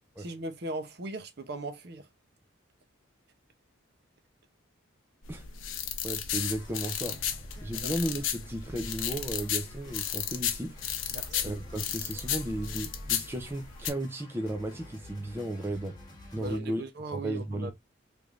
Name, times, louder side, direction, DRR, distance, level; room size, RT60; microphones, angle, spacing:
voice 1, 0.2-2.1 7.8-7.9 11.1-11.5 16.4-17.7, right 2 dB, 50° right, 0.7 m, -38 dB
sound 1, 5.2-13.9, left 9 dB, 80° left, 0.7 m, -34 dB
voice 2, 6.0-7.2 7.6-11.1 11.4-16.0 16.3-16.8 17.1-17.7, right 1 dB, 10° right, 0.5 m, -34 dB
sound 2, 6.4-16.6, equal, 20° left, 1.2 m, -47 dB
3.4 x 3.2 x 2.4 m
head